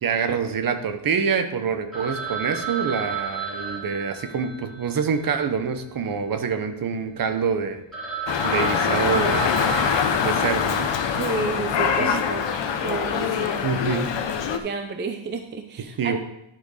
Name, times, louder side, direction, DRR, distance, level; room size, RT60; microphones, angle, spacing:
voice 1, 0.0-7.8 8.4-10.9 12.0-12.2 13.6-14.1 16.0-16.2, right 6 dB, 45° right, 8 dB, 0.9 m, -26 dB
Telephone, 1.9-6.3 6.5-6.6 7.2-7.3 7.6-7.7 7.9-10.9, right 5 dB, ahead, 2.5 m, -33 dB
Dog, 8.3-14.6, left 7 dB, 60° left, 0.9 m, -24 dB
voice 2, 11.1-12.5 12.8-13.6 14.6-16.2, right 5 dB, 25° right, 6 dB, 0.5 m, -31 dB
11.5 x 4.6 x 4.9 m, 0.83 s
cardioid pair, 145°, 49 cm